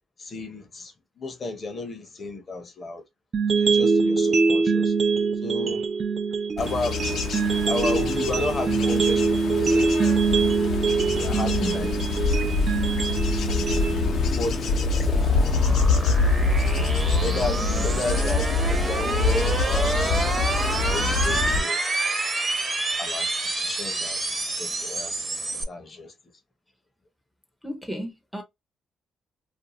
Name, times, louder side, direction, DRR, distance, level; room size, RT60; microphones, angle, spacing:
voice 1, 0.2-3.0 3.6-4.9 5.4-5.9 6.6-7.0 7.7-10.6 11.2-12.0 12.4-12.7 13.5-14.0 14.4-15.8 16.8-20.4 20.9-21.8 23.0-24.2 24.6-25.1 25.7-26.1, left 2 dB, 40° left, 0.8 m, -33 dB
sound 1, 3.3-15.4, right 4 dB, 45° right, 0.5 m, -24 dB
Bird / Insect / Wind, 6.6-21.6, left 3 dB, 70° left, 0.7 m, -25 dB
voice 2, 11.6-11.9 17.6-17.8 27.6-28.4, equal, ahead, 0.7 m, -34 dB
sound 2, 12.5-25.6, right 2 dB, 25° right, 0.9 m, -29 dB
2.5 x 2.3 x 3.0 m
cardioid pair, 90°, 0 cm